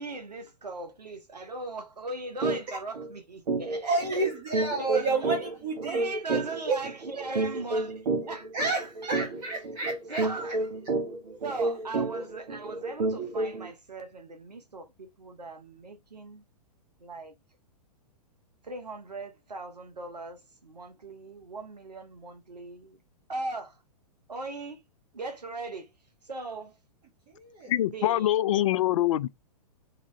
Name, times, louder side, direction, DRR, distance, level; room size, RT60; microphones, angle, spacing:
voice 1, 0.0-4.3 4.6-5.5 5.8-9.2 10.1-10.6 11.4-16.4 17.0-17.3 18.6-23.0 23.3-23.8 24.3-24.8 25.1-25.9 26.2-26.8 27.9-28.3, right 3 dB, 85° right, 0.9 m, -39 dB
sound 1, 2.4-2.6 2.9-3.1 3.5-13.7, right 2 dB, 55° right, 1.5 m, -30 dB
voice 2, 3.8-6.0 6.7-6.8 8.5-10.2 11.3-11.4 27.3-27.7, right 3 dB, 35° right, 1.6 m, -30 dB
voice 3, 27.7-29.3, left 13 dB, 55° left, 0.4 m, -24 dB
4.0 x 3.6 x 3.1 m
figure-of-eight pair, 115°, 20 cm